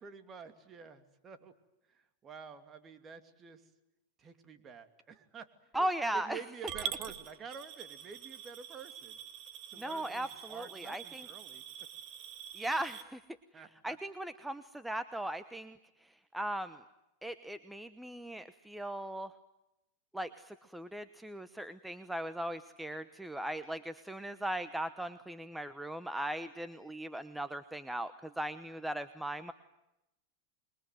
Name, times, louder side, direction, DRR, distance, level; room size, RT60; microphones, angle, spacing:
voice 1, 0.0-1.5 1.9-3.6 4.2-5.5 5.8-5.9 6.1-9.2 9.7-11.6 13.5-14.0, right 6 dB, 25° right, 9 dB, 2.7 m, -49 dB
voice 2, 5.7-6.4 9.8-11.3 12.5-13.2 13.8-16.8 17.2-19.3 20.1-29.5, right 1 dB, 5° right, 11 dB, 1.0 m, -38 dB
Coin (dropping) / Glass, 6.7-13.0, right 9 dB, 45° right, 2.1 m, -45 dB
27.0 x 22.5 x 9.3 m, 0.90 s
hypercardioid pair, 120°, 0 cm